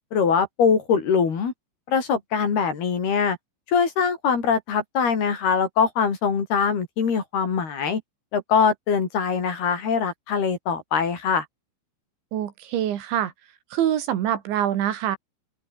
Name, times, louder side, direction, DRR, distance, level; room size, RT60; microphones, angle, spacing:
voice 1, 0.1-1.5 1.9-3.4 3.7-8.0 8.3-11.5, left 6 dB, 55° left, 5.9 m, -22 dB
voice 2, 12.3-13.3 13.7-15.2, right 11 dB, 70° right, 4.3 m, -25 dB
open air
omnidirectional pair, 5.6 m